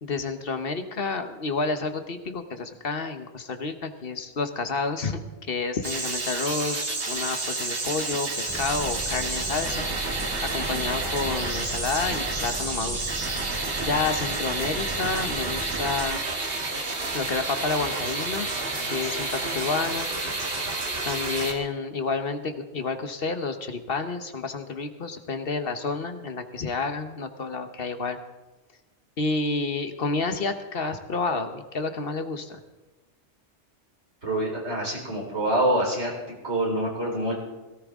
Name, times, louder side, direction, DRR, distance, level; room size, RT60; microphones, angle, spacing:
voice 1, 0.0-9.8 10.5-13.0 13.8-16.2 17.1-18.5 18.8-20.1 21.0-28.2 29.2-32.6, left 4 dB, 55° left, 8 dB, 1.2 m, -29 dB
sound 1, 5.8-21.5, right 3 dB, 55° right, 2.0 m, -30 dB
sound 2, 8.5-16.0, right 2 dB, 20° right, 2.3 m, -37 dB
voice 2, 34.2-37.4, right 1 dB, 75° right, -2 dB, 4.6 m, -26 dB
17.5 x 17.0 x 3.6 m, 1.1 s
omnidirectional pair, 1.2 m